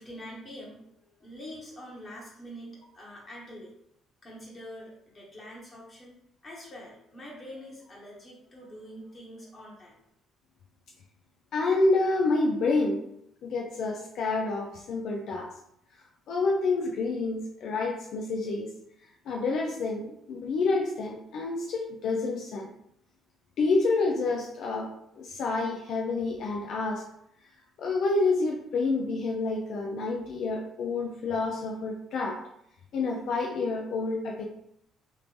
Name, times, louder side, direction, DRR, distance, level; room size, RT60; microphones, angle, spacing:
voice 1, 0.0-3.7 4.2-6.2 6.4-10.0, equal, 30° left, -4 dB, 1.1 m, -45 dB
voice 2, 11.5-13.1 13.4-15.5 16.3-18.7 19.3-22.7 23.6-27.1 27.8-32.4 32.9-34.4, left 3 dB, 65° left, 1 dB, 0.4 m, -28 dB
3.1 x 2.5 x 3.5 m, 0.74 s
cardioid pair, 95°, 0 cm